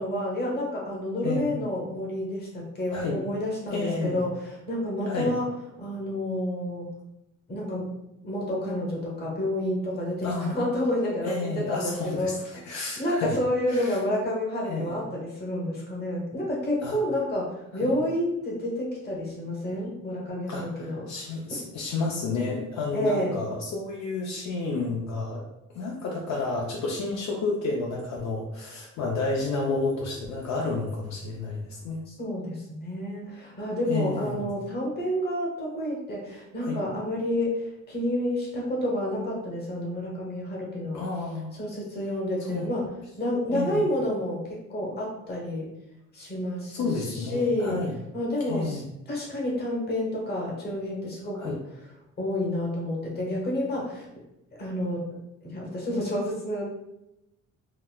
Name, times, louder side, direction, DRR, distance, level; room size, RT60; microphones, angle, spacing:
voice 1, 0.0-5.5 5.8-6.9 7.5-8.0 8.2-12.6 13.0-21.1 22.9-23.3 32.1-41.0 41.5-42.9 43.2-45.7 46.1-47.8 48.1-51.6 52.2-54.1 54.5-55.1 55.4-56.6, left 1 dB, 30° left, -3 dB, 0.9 m, -29 dB
voice 2, 1.2-1.6 2.9-3.2 3.7-4.2 5.1-5.3 10.2-10.5 11.2-13.4 13.7-14.0 14.7-15.0 16.8-17.0 17.7-17.9 20.5-25.5 25.7-32.0 33.9-34.5 36.6-36.8 40.9-41.6 42.4-42.7 43.5-43.9 46.7-48.0 48.5-48.8 51.3-51.6, left 3 dB, 65° left, -1 dB, 0.5 m, -31 dB
3.9 x 2.1 x 2.2 m, 0.89 s
cardioid pair, 140°, 30 cm